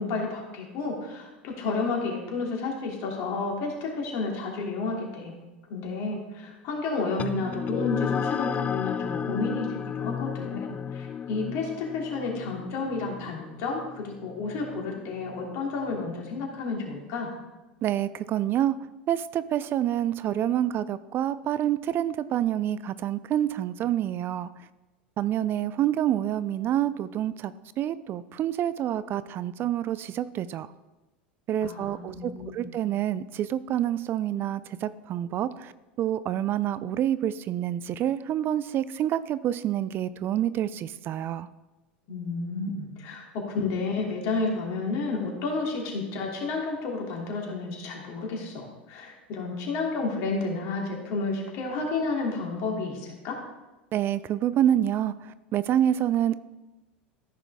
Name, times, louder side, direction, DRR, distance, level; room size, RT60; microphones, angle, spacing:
voice 1, 0.0-5.3 5.7-10.6 10.9-17.3 31.6-32.7 42.1-53.4, left 3 dB, 55° left, -1 dB, 2.8 m, -31 dB
sound 1, 7.2-16.0, left 7 dB, 25° left, 0.4 m, -33 dB
voice 2, 17.8-18.8 19.1-24.5 25.2-30.7 31.5-35.7 36.0-41.5 53.9-55.1 55.5-56.4, right 11 dB, 40° right, 16 dB, 0.4 m, -27 dB
14.0 x 6.0 x 3.6 m, 1.1 s
hypercardioid pair, 90°, 6 cm